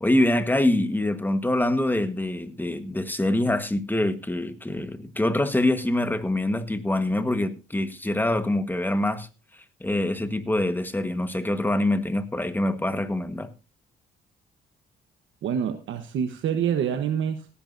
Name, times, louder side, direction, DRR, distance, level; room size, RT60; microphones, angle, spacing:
voice 1, 0.0-9.3 9.8-13.5, left 1 dB, 10° left, 1.4 m, -25 dB
voice 2, 15.4-17.5, right 8 dB, 75° right, 1.2 m, -26 dB
17.5 x 11.0 x 2.7 m
cardioid pair, 90°, 20 cm